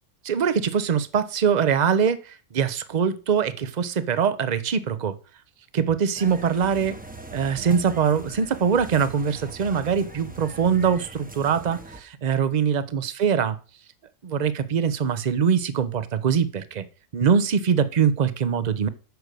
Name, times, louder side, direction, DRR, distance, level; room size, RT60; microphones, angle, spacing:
voice 1, 0.2-5.2 5.7-6.9 7.3-13.6 14.2-16.9 17.1-18.9, right 7 dB, 40° right, 14 dB, 0.7 m, -23 dB
sound 1, 6.1-12.0, right 3 dB, 10° right, 0.8 m, -41 dB
9.3 x 6.3 x 6.7 m, 0.37 s
omnidirectional pair, 1.4 m